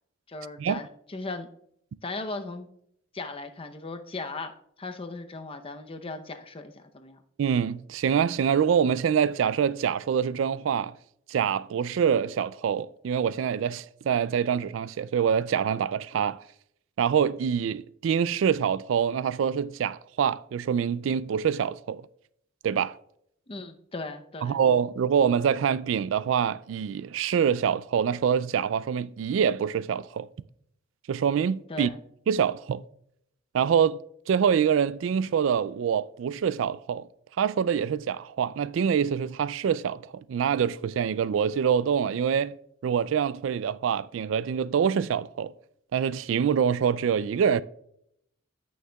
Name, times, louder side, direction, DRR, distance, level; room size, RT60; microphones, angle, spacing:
voice 1, 0.3-1.5 2.0-2.7 3.1-7.2 23.5-24.6 31.7-32.0, left 3 dB, 30° left, 0.7 m, -37 dB
voice 2, 7.4-10.9 11.3-16.4 17.0-22.0 22.6-23.0 24.4-30.3 31.1-31.9 32.3-32.8 33.5-34.0 34.3-37.1 37.4-42.6 42.8-45.5 45.9-47.6, right 7 dB, 75° right, 0.3 m, -25 dB
15.0 x 6.4 x 2.3 m
head